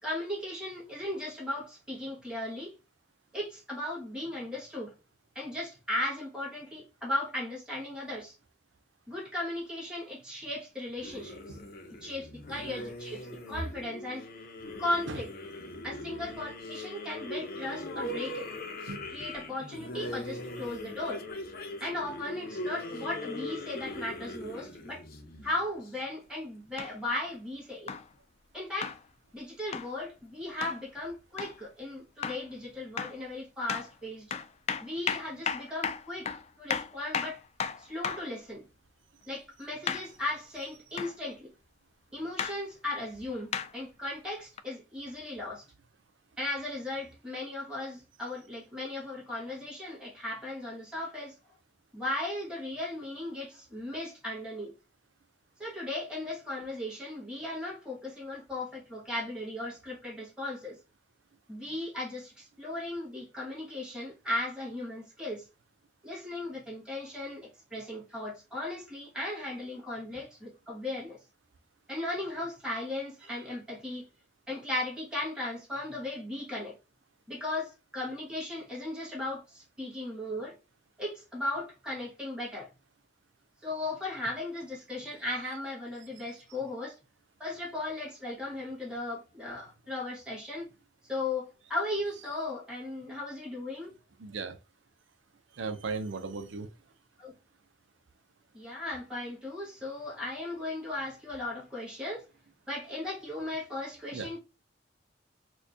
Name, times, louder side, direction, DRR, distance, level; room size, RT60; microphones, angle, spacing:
voice 1, 0.0-2.8 3.3-4.9 5.4-8.3 9.1-11.6 12.0-14.3 14.8-15.3 15.8-18.5 19.1-21.3 21.8-25.0 25.4-27.9 28.5-28.9 29.3-34.3 34.8-36.3 36.6-37.4 37.8-38.7 39.3-41.5 42.1-45.6 46.4-51.4 51.9-54.7 55.6-60.8 61.5-65.5 66.0-71.2 71.9-74.0 74.5-76.8 77.3-80.6 81.0-82.7 83.6-87.0 87.4-90.7 91.1-93.9 97.2-97.3 98.5-102.3 102.7-104.4, left 1 dB, 5° right, 1.7 m, -36 dB
sound 1, 11.0-25.9, left 1 dB, 55° left, 0.7 m, -40 dB
sound 2, 26.8-26.9 27.9-28.1 28.8-29.0 29.7-29.9 30.6-30.8 31.4-31.6 32.2-32.5 33.0-33.2 33.7-33.9 34.3-38.3 39.9-40.1 41.0-41.2 42.4-42.6 43.5-43.7 44.6-44.7, left 7 dB, 35° left, 0.3 m, -34 dB
voice 2, 94.2-94.6 95.5-96.7 104.1-104.3, right 4 dB, 90° right, 0.5 m, -36 dB
4.3 x 2.3 x 2.7 m
head